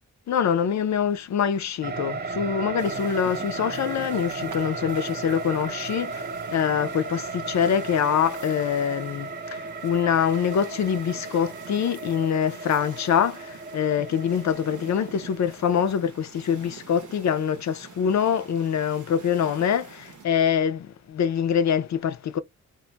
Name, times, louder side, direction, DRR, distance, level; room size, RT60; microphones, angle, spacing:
voice 1, 0.3-22.4, left 8 dB, 60° left, 0.5 m, -25 dB
sound 1, 1.8-16.0, right 4 dB, 30° right, 0.5 m, -35 dB
sound 2, 2.8-20.2, right 7 dB, 75° right, 0.7 m, -47 dB
2.2 x 2.0 x 3.8 m
cardioid pair, 90°, 31 cm